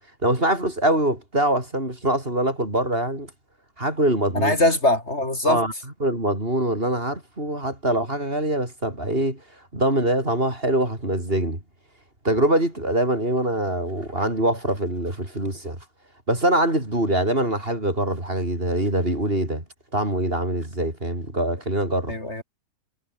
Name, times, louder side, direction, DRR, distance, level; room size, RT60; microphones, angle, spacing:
voice 1, 0.2-3.3 3.8-4.6 5.4-5.7 6.0-9.4 9.7-11.6 12.2-15.8 16.3-19.6 19.9-22.1, right 1 dB, 35° right, 6.5 m, -23 dB
voice 2, 4.3-5.6 22.1-22.4, left 1 dB, 45° left, 4.5 m, -21 dB
omnidirectional pair, 1.7 m